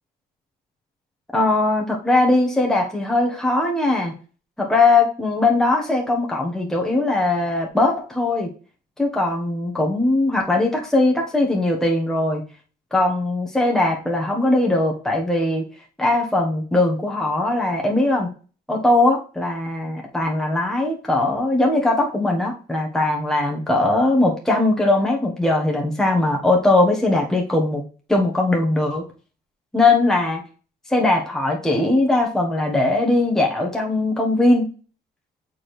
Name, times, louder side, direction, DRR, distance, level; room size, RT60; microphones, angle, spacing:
voice 1, 1.3-4.1 4.6-8.5 9.0-12.4 12.9-15.6 16.0-18.3 18.7-27.8 28.1-29.0 29.7-30.4 30.9-34.7, left 2 dB, 5° left, -1 dB, 1.3 m, -20 dB
7.1 x 4.5 x 3.3 m, 0.38 s
cardioid pair, 110°, 17 cm